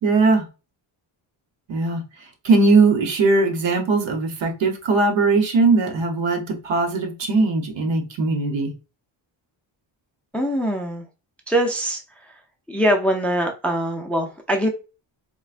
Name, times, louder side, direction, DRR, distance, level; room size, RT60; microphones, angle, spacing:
voice 1, 0.0-0.5 1.7-2.0 2.4-8.7, right 3 dB, 70° right, 4 dB, 1.0 m, -19 dB
voice 2, 10.3-11.0 11.5-12.0 12.7-14.7, equal, 5° left, 3 dB, 0.5 m, -22 dB
4.4 x 2.2 x 2.4 m, 0.30 s
cardioid pair, 120°, 46 cm